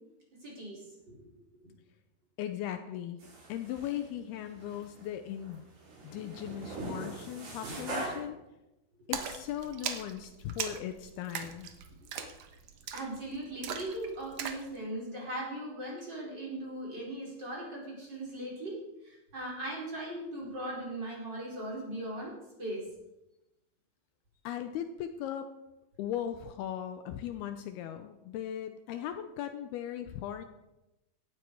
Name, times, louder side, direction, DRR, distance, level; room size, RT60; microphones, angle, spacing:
voice 1, 0.4-1.2 1.6-1.7 8.0-8.3 12.9-18.8 19.0-22.3 22.6-22.8, right 1 dB, 25° right, -4 dB, 4.9 m, -39 dB
voice 2, 2.4-3.2 3.5-5.7 6.0-8.4 9.1-11.7 24.4-25.5 26.0-30.4, left 10 dB, 80° left, 8 dB, 2.6 m, -38 dB
sound 1, 3.2-4.1 4.5-5.1 5.4-8.2, right 2 dB, 70° right, 7.1 m, -41 dB
Splash splatter, 9.1-14.7, right 7 dB, 85° right, 1.4 m, -40 dB
17.5 x 13.5 x 4.7 m, 0.96 s
omnidirectional pair, 4.8 m